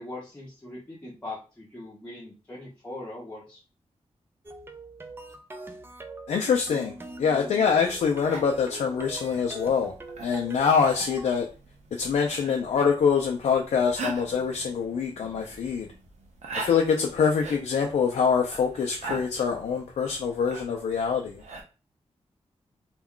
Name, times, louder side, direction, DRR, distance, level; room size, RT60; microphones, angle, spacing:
voice 1, 0.0-3.6, left 2 dB, 10° left, -6 dB, 0.7 m, -40 dB
sound 1, 4.4-11.3, right 2 dB, 20° right, 0.3 m, -42 dB
voice 2, 6.3-9.9 10.2-11.5 11.9-15.9 16.5-21.4, left 6 dB, 75° left, 1 dB, 0.4 m, -25 dB
sound 2, 7.6-21.6, right 3 dB, 75° right, 0.6 m, -43 dB
2.3 x 2.2 x 3.6 m, 0.33 s
wide cardioid pair, 150°, 12 cm